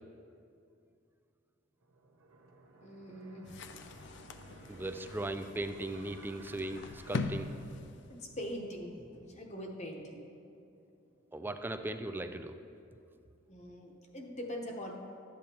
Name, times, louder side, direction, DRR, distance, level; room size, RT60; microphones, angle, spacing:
sound 1, 1.8-12.5, right 2 dB, 85° right, 0.9 m, -59 dB
voice 1, 2.8-3.5 8.1-10.2 11.4-11.5 13.5-14.9, equal, 35° left, 1 dB, 0.9 m, -43 dB
sound 2, 3.5-8.4, left 3 dB, 60° left, 0.5 m, -42 dB
voice 2, 4.7-7.5 11.3-12.5, right 2 dB, 10° right, 8 dB, 0.3 m, -38 dB
12.5 x 8.5 x 2.9 m, 2.5 s
head